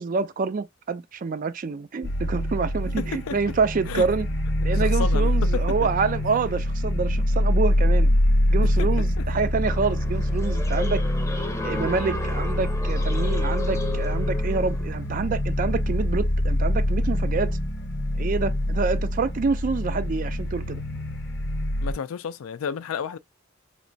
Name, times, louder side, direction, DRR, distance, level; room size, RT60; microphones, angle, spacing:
voice 1, 0.0-4.3 4.6-8.1 8.5-11.1 11.6-17.6 18.2-20.8, right 4 dB, 40° right, 0.3 m, -27 dB
sound 1, 2.0-21.9, left 1 dB, 55° left, 0.8 m, -25 dB
voice 2, 3.0-3.4 3.9-4.0 4.7-5.6 9.2-9.3 21.8-23.2, left 6 dB, 75° left, 0.4 m, -31 dB
sound 2, 9.6-15.0, left 2 dB, 15° left, 0.6 m, -34 dB
3.2 x 3.0 x 2.6 m
head